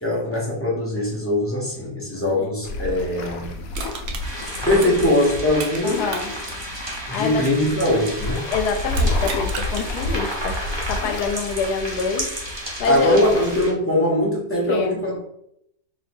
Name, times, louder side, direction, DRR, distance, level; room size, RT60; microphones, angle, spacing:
voice 1, 0.0-3.6 4.6-6.1 7.1-8.5 12.9-15.2, left 1 dB, 10° left, -4 dB, 0.7 m, -21 dB
sound 1, 2.6-13.7, left 2 dB, 70° left, 1.0 m, -30 dB
Crushing, 3.7-5.8 6.1-8.3 8.9-9.9 10.3-10.4, right 5 dB, 80° right, 0.5 m, -35 dB
sound 2, 4.2-13.7, right 1 dB, 20° right, 0.7 m, -33 dB
voice 2, 5.8-6.3 7.1-7.4 8.5-10.6 10.9-13.2 14.7-15.0, left 5 dB, 90° left, 6 dB, 1.2 m, -26 dB
3.1 x 2.8 x 4.3 m, 0.76 s
omnidirectional pair, 1.7 m